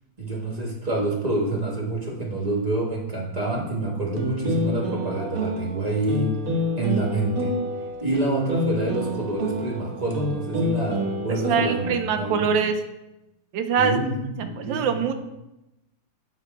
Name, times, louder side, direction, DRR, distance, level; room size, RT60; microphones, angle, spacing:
voice 1, 0.2-6.3 6.8-7.5 8.0-12.4 13.8-14.1 14.4-15.0, right 2 dB, 25° right, -2 dB, 1.0 m, -27 dB
sound 1, 4.2-12.3, equal, 55° right, 1.2 m, -28 dB
voice 2, 11.3-12.8 13.5-14.0 14.4-15.1, right 6 dB, 90° right, 7 dB, 1.4 m, -24 dB
8.8 x 3.0 x 4.4 m, 0.95 s
omnidirectional pair, 2.0 m